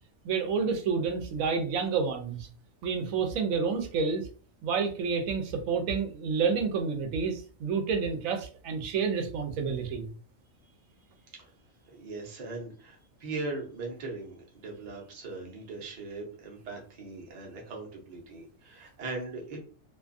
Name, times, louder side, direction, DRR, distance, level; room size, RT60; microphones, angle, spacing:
voice 1, 0.2-2.5 2.8-4.3 4.6-10.1, right 5 dB, 85° right, 5 dB, 1.0 m, -29 dB
voice 2, 11.9-19.6, right 3 dB, 40° right, 0 dB, 0.7 m, -40 dB
2.6 x 2.3 x 2.5 m, 0.40 s
omnidirectional pair, 1.4 m